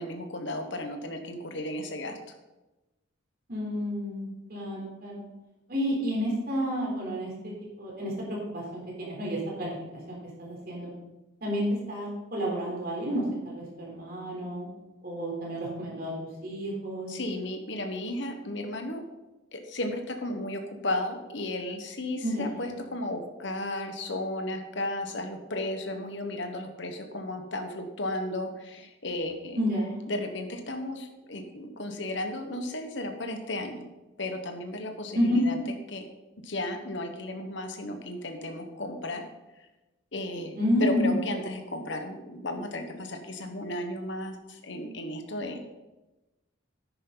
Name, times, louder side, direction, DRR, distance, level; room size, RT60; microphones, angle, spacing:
voice 1, 0.0-2.2 17.1-19.0 19.5-29.6 30.1-33.8 34.2-35.6 35.9-36.1 36.4-39.2 39.6-39.7 40.1-40.5 40.8-45.6, left 1 dB, 60° left, 5 dB, 1.3 m, -34 dB
voice 2, 3.5-5.2 5.7-7.5 7.8-8.1 8.5-9.8 10.1-10.9 11.4-14.7 15.0-16.1 16.4-17.1 22.2-22.7 29.6-30.0 35.1-35.4 40.6-41.2, equal, 50° right, -3 dB, 3.7 m, -30 dB
10.5 x 9.6 x 4.0 m, 1.1 s
head